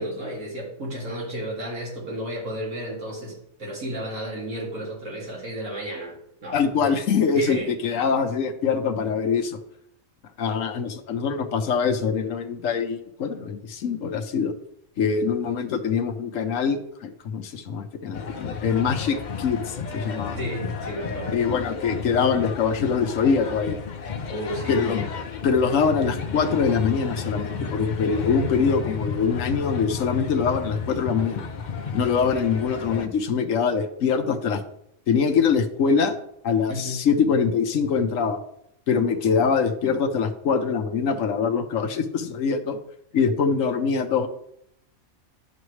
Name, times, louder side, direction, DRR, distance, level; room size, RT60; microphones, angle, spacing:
voice 1, 0.0-6.2 6.4-6.6 7.3-7.7 20.4-21.4 24.3-24.7 36.7-37.0, right 1 dB, 70° right, -4 dB, 2.9 m, -32 dB
voice 2, 6.5-9.6 10.4-14.5 15.0-20.4 21.3-23.8 24.7-25.1 25.4-31.5 31.9-34.6 35.1-36.2 36.4-38.4 38.9-42.8 43.1-44.3, left 5 dB, 70° left, 8 dB, 1.1 m, -23 dB
sound 1, 18.1-33.1, left 6 dB, 55° left, 0.5 m, -32 dB
10.5 x 6.0 x 3.2 m, 0.74 s
omnidirectional pair, 1.5 m